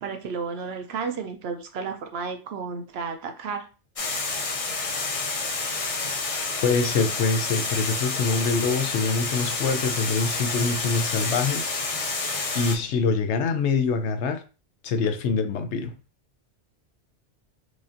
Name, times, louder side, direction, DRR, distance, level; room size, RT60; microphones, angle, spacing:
voice 1, 0.0-3.7, right 5 dB, 65° right, 0.8 m, -32 dB
Water, 4.0-12.8, left 3 dB, 45° left, 0.5 m, -29 dB
voice 2, 6.6-11.7 12.5-14.4 14.8-15.9, left 4 dB, 75° left, 0.9 m, -25 dB
4.9 x 2.5 x 2.5 m
omnidirectional pair, 1.2 m